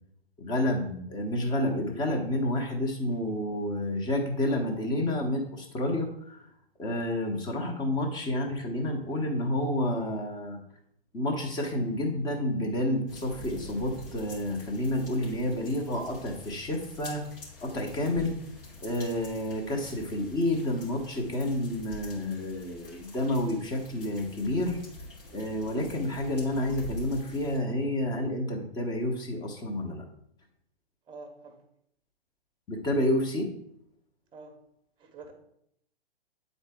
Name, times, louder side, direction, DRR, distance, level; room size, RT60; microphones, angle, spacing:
voice 1, 0.4-6.4 6.8-10.6 11.1-17.2 17.6-18.3 18.8-24.8 25.3-30.0 32.7-33.5, left 1 dB, 15° left, 2 dB, 1.0 m, -29 dB
sound 1, 13.1-27.6, left 2 dB, 65° left, 2.6 m, -46 dB
voice 2, 31.1-31.6 34.3-34.6 35.0-35.3, right 3 dB, 15° right, 5 dB, 1.0 m, -46 dB
9.0 x 4.0 x 3.6 m, 0.73 s
figure-of-eight pair, 115°, 30 cm